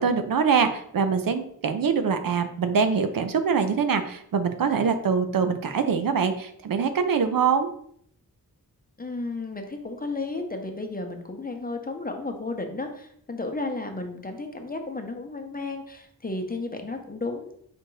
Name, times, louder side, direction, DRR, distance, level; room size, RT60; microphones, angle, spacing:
voice 1, 0.0-7.7, right 6 dB, 65° right, 8 dB, 0.6 m, -24 dB
voice 2, 9.0-17.5, left 3 dB, 25° left, 4 dB, 0.7 m, -33 dB
4.5 x 2.5 x 4.6 m, 0.67 s
cardioid pair, 60°, 37 cm